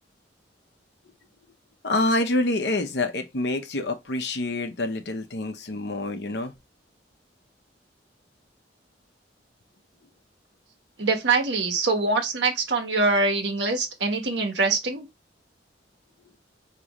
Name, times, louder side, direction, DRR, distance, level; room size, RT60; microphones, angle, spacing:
voice 1, 1.8-6.5, left 2 dB, 75° left, 0.9 m, -26 dB
voice 2, 11.0-15.1, right 3 dB, 85° right, 1.2 m, -24 dB
5.1 x 3.1 x 3.0 m
head